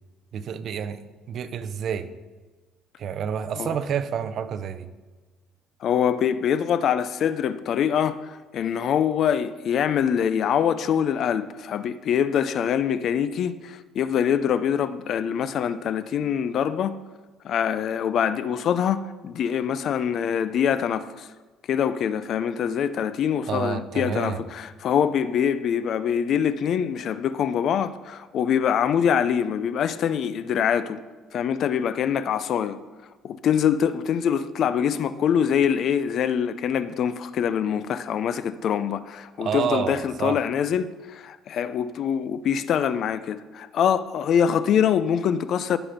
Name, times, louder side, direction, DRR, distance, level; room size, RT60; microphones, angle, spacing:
voice 1, 0.3-1.0 1.3-2.1 3.0-4.9 23.5-24.4 39.4-40.4, right 7 dB, 50° right, 0.7 m, -29 dB
voice 2, 5.8-17.0 17.4-21.3 21.7-31.0 31.3-32.8 33.2-45.8, left 8 dB, 50° left, 0.5 m, -24 dB
14.5 x 6.1 x 5.2 m
cardioid pair, 135°, 0 cm